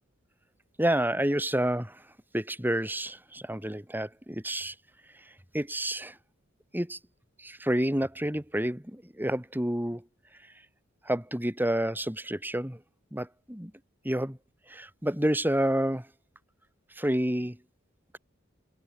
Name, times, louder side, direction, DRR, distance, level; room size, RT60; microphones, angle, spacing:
voice 1, 0.8-2.0 2.3-4.7 5.5-6.2 6.7-7.0 7.4-10.0 11.1-12.8 13.1-13.7 14.0-14.4 14.7-16.1 17.0-17.6, right 1 dB, 10° right, 5.6 m, -29 dB
head